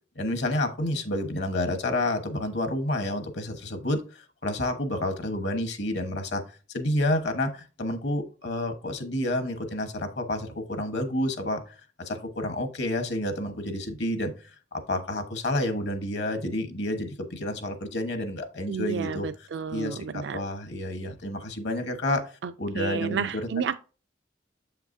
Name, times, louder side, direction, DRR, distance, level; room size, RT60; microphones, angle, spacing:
voice 1, 0.1-6.4 6.7-14.3 14.7-19.3 19.7-22.3 22.6-23.5, left 1 dB, 65° left, 1.2 m, -29 dB
voice 2, 18.7-20.4 22.4-23.8, right 6 dB, 65° right, 0.3 m, -31 dB
7.8 x 5.8 x 2.6 m
head